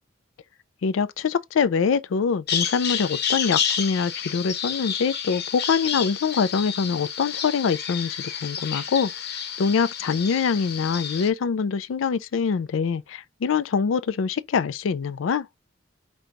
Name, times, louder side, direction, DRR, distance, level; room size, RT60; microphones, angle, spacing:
voice 1, 0.8-15.5, left 6 dB, 85° left, 0.4 m, -24 dB
Bird vocalization bird call bird song, 2.5-11.3, left 8 dB, 60° left, 0.9 m, -30 dB
5.1 x 2.2 x 2.9 m
head